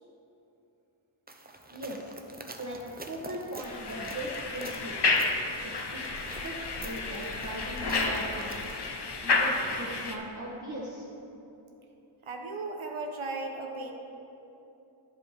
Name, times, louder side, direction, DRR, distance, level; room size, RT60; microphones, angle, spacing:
sound 1, 1.3-8.9, right 2 dB, 20° right, 0.6 m, -46 dB
voice 1, 1.7-2.1 2.6-5.2 5.6-8.5 9.2-11.1, right 1 dB, 35° right, -5 dB, 1.2 m, -39 dB
sound 2, 3.6-10.1, left 3 dB, 55° left, 0.8 m, -31 dB
voice 2, 12.2-13.9, right 3 dB, 80° right, 2 dB, 1.0 m, -36 dB
11.0 x 5.4 x 4.2 m, 3.0 s
wide cardioid pair, 50°, 48 cm